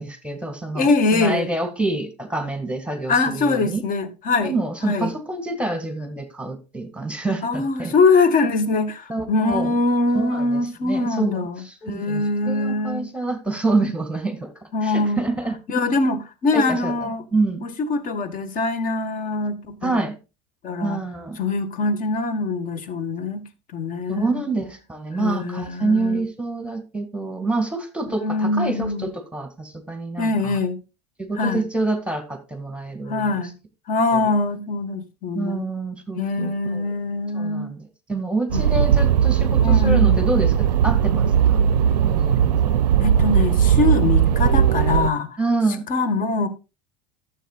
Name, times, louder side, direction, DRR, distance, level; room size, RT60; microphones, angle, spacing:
voice 1, 0.0-3.8 4.4-7.9 9.1-9.8 10.1-10.6 10.8-15.6 16.5-16.9 17.3-17.6 19.8-20.2 20.8-21.4 24.1-30.6 31.2-33.3 34.1-34.3 35.3-36.9 37.3-37.8 38.1-41.7 42.0-42.8 45.4-45.8, right 3 dB, 5° right, 2.0 m, -27 dB
voice 2, 0.7-1.5 3.1-4.5 4.8-5.1 7.4-13.1 14.7-15.2 15.7-17.2 17.6-20.1 20.6-21.0 21.4-23.4 23.7-24.4 25.1-26.2 28.2-29.1 30.2-30.8 31.4-31.6 33.1-33.5 33.9-35.6 36.1-37.7 39.6-40.2 43.0-45.4 45.9-46.5, left 3 dB, 40° left, 1.7 m, -23 dB
sound 1, 38.5-45.1, right 9 dB, 80° right, 0.4 m, -18 dB
14.0 x 7.5 x 2.4 m
figure-of-eight pair, 70°, 20 cm